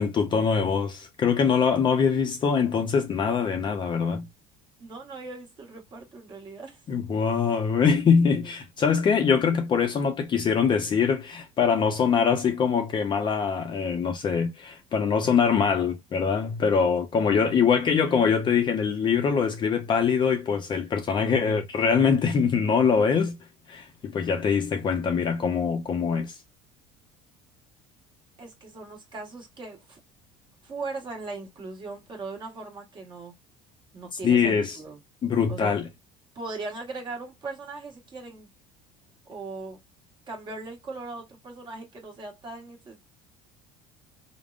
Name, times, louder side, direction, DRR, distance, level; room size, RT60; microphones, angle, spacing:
voice 1, 0.0-4.3 6.9-23.4 23.7-26.4 34.2-34.8 35.2-35.9, left 6 dB, 30° left, 0.5 m, -23 dB
voice 2, 4.8-6.8 21.2-21.6 28.4-30.0 30.6-33.3 33.9-35.0 35.5-35.8 36.3-38.5 39.3-39.8 40.3-43.0, right 3 dB, 30° right, 1.2 m, -39 dB
3.4 x 2.1 x 2.4 m
cardioid pair, 130°, 16 cm